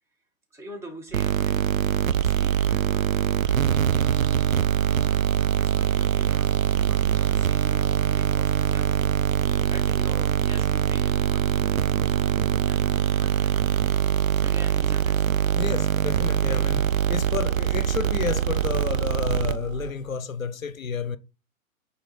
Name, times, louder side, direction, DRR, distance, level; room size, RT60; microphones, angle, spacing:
voice 1, 0.5-8.9 9.7-12.1 12.7-13.6 14.4-15.8, right 1 dB, 5° right, 1.7 m, -46 dB
sound 1, 1.1-19.9, right 9 dB, 70° right, 0.7 m, -23 dB
voice 2, 15.5-21.2, left 6 dB, 70° left, 0.8 m, -31 dB
8.9 x 4.0 x 4.4 m
figure-of-eight pair, 115°, 42 cm